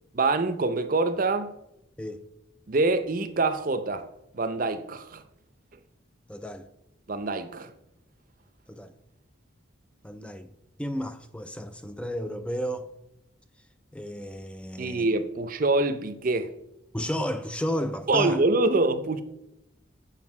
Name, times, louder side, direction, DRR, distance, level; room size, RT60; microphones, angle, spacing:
voice 1, 0.1-1.5 2.7-4.1 4.3-5.2 7.1-7.7 14.8-16.5 18.1-19.2, right 2 dB, 45° right, 0.6 m, -25 dB
voice 2, 6.3-6.7 8.7-8.9 10.0-10.5 10.8-12.9 13.9-15.1 16.9-18.4, equal, 5° left, 0.3 m, -32 dB
7.3 x 5.2 x 5.9 m
head